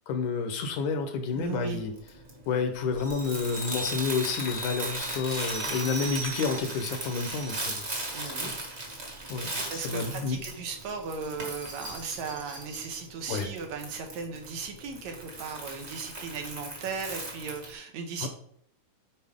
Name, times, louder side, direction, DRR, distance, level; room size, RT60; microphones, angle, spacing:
voice 1, 0.1-1.9 2.5-7.8 8.2-8.5 9.3-10.4 13.3-13.5 18.2-18.3, left 5 dB, 75° left, 6 dB, 2.3 m, -30 dB
Crumpling crinkling, 1.3-17.7, right 2 dB, 30° right, 1.4 m, -38 dB
voice 2, 1.4-1.8 8.1-8.5 9.5-18.3, right 5 dB, 75° right, 4 dB, 2.2 m, -37 dB
sound 1, 3.0-8.1 8.4-8.6, equal, 50° right, 1.1 m, -40 dB
10.0 x 4.7 x 3.6 m, 0.65 s
omnidirectional pair, 3.5 m